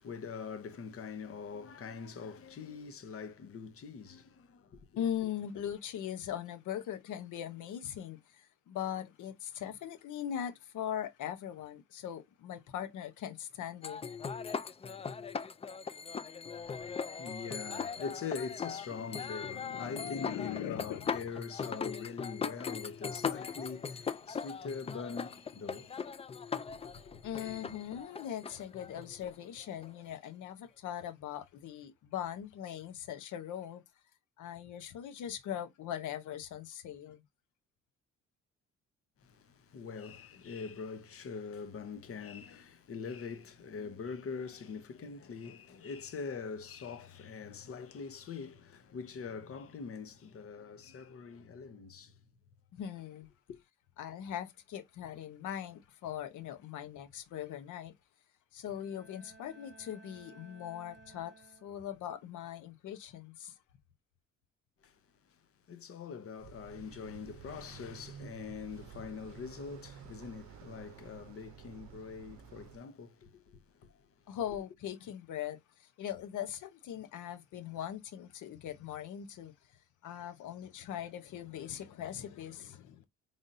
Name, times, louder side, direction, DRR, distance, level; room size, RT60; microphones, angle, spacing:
voice 1, 0.0-5.0 16.6-26.2 26.7-27.2 39.2-52.2 53.5-53.6 64.8-65.0 65.3-65.4 65.7-74.3, left 5 dB, 50° left, 0.9 m, -43 dB
voice 2, 5.0-14.0 19.0-19.2 19.5-21.1 27.2-33.8 34.4-37.2 52.7-53.3 54.0-57.9 58.5-63.6 74.3-83.0, left 10 dB, 80° left, 0.9 m, -40 dB
sound 1, 13.8-30.1, left 6 dB, 20° left, 0.3 m, -40 dB
Bowed string instrument, 58.7-62.1, right 4 dB, 35° right, 1.2 m, -57 dB
sound 2, 66.4-72.8, right 8 dB, 70° right, 0.6 m, -52 dB
3.9 x 3.5 x 2.6 m
cardioid pair, 90°, 30 cm